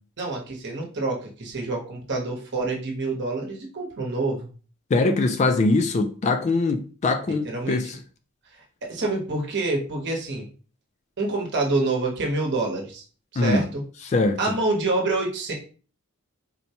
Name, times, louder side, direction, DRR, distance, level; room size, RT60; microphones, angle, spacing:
voice 1, 0.2-4.5 7.3-7.8 8.8-10.5 11.2-13.0 13.3-13.8 14.4-15.5, right 2 dB, 55° right, 1.0 m, -27 dB
voice 2, 4.9-8.0 13.4-13.6 14.1-14.4, left 3 dB, 30° left, 0.3 m, -22 dB
4.0 x 2.2 x 2.8 m
head